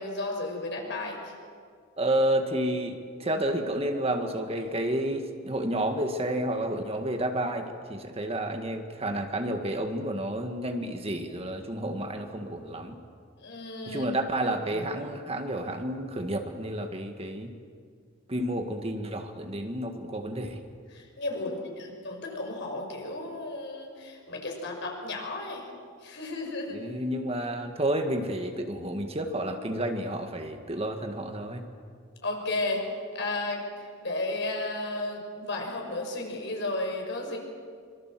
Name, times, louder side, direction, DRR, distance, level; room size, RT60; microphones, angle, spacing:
voice 1, 0.0-1.3 13.4-14.1 14.7-14.9 20.9-25.7 26.0-26.8 32.2-32.8 33.1-37.4, left 2 dB, 65° left, 1 dB, 6.1 m, -33 dB
voice 2, 2.0-13.0 13.9-17.5 18.3-20.6 26.7-31.7, right 1 dB, 30° right, 5 dB, 1.8 m, -30 dB
25.0 x 24.5 x 7.7 m, 2.1 s
head